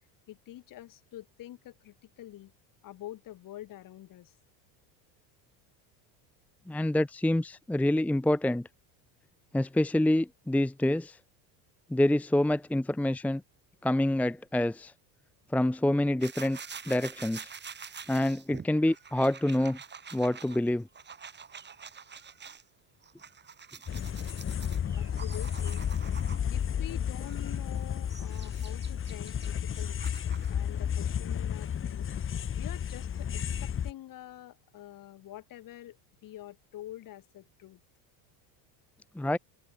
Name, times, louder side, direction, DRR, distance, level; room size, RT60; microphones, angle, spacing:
voice 1, 0.3-2.5 2.8-4.3 25.0-25.9 26.5-30.2 30.5-32.1 32.5-37.8, left 13 dB, 45° left, 6.6 m, -46 dB
voice 2, 6.7-8.7 9.5-11.2 11.9-13.4 13.8-14.9 15.5-16.6 16.9-17.5 18.1-19.8 20.1-20.8 39.2-39.4, left 1 dB, 5° left, 0.9 m, -27 dB
sound 1, 16.2-22.6 23.0-26.6 27.2-30.6, right 6 dB, 25° right, 5.2 m, -47 dB
sound 2, 23.9-33.9, left 8 dB, 25° left, 2.0 m, -32 dB
open air
supercardioid pair, 130°, 45 cm